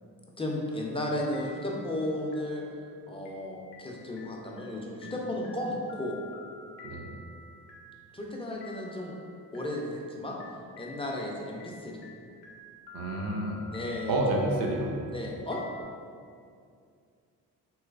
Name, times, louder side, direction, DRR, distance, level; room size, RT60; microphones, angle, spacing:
voice 1, 0.4-2.6 3.1-6.2 8.1-9.1 9.5-10.4 10.8-12.0 13.7-14.2 15.1-15.6, left 1 dB, 15° left, -2 dB, 0.5 m, -34 dB
sound 1, 0.6-1.1 1.3-15.8, left 2 dB, 85° left, 0.6 m, -50 dB
voice 2, 12.9-13.6 14.1-15.0, right 1 dB, 55° right, 0 dB, 0.6 m, -29 dB
3.1 x 3.0 x 2.4 m, 2.3 s
supercardioid pair, 60°, 41 cm